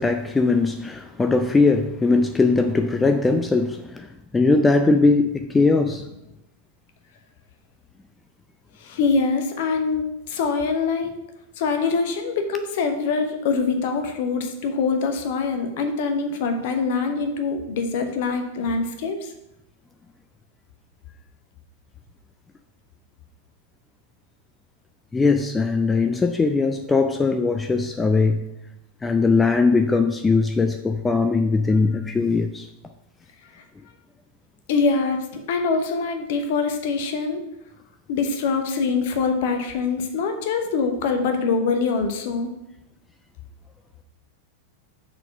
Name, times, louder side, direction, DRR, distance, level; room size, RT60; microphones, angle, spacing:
voice 1, 0.0-6.1 25.1-28.4 29.0-32.7, left 3 dB, 10° left, 6 dB, 0.4 m, -20 dB
voice 2, 8.8-11.2 11.6-19.3 28.2-28.3 31.9-32.0 34.7-37.4 38.1-42.5, left 4 dB, 50° left, 6 dB, 1.0 m, -24 dB
6.7 x 4.1 x 5.7 m, 0.87 s
figure-of-eight pair, 90°, 0 cm